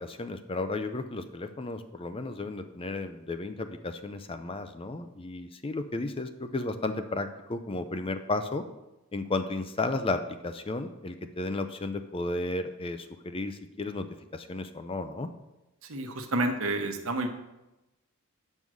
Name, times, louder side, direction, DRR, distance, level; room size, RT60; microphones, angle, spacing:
voice 1, 0.0-8.6 9.1-14.1 14.3-15.3, left 2 dB, 25° left, 9 dB, 0.4 m, -33 dB
voice 2, 15.8-17.3, right 2 dB, 65° right, 5 dB, 1.1 m, -29 dB
7.8 x 5.5 x 6.2 m, 0.99 s
head